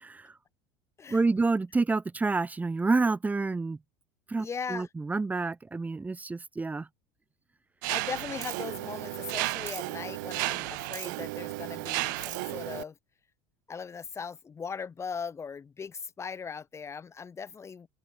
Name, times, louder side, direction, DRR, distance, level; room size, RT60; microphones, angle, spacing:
voice 1, 1.1-3.8 4.3-6.9, right 3 dB, 15° right, 1.3 m, -28 dB
voice 2, 4.4-4.9 7.9-12.9 13.7-17.9, left 6 dB, 25° left, 4.0 m, -39 dB
Mechanisms, 7.8-12.8, right 24 dB, 70° right, 4.9 m, -33 dB
open air
hypercardioid pair, 85°, 10 cm